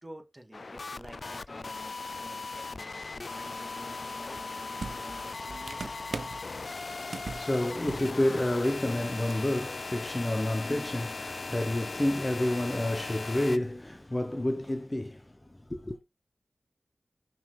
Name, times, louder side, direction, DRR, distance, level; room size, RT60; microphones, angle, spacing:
voice 1, 0.0-4.4 4.7-6.0, right 1 dB, 25° right, 2.4 m, -50 dB
sound 1, 0.5-13.6, left 3 dB, 65° left, 0.4 m, -38 dB
sound 2, 4.4-4.5 4.8-6.4 7.1-7.5 7.8-8.1 8.4-8.6 9.3-9.4, right 4 dB, 80° right, 0.6 m, -39 dB
voice 2, 6.6-16.0, left 1 dB, 25° left, 0.9 m, -30 dB
5.5 x 4.3 x 4.8 m
cardioid pair, 45°, 0 cm